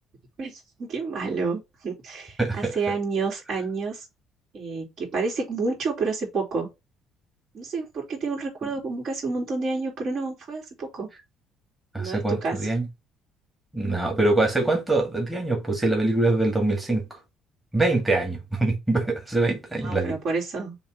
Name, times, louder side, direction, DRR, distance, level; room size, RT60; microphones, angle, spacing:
voice 1, 0.4-4.0 4.5-6.7 7.5-11.1 11.9-12.7 19.8-20.7, right 4 dB, 45° right, 3.4 m, -29 dB
voice 2, 2.4-2.7 8.6-8.7 11.9-12.9 13.7-17.0 17.7-20.2, right 2 dB, 5° right, 1.9 m, -24 dB
6.9 x 3.0 x 5.5 m
cardioid pair, 160°, 0 cm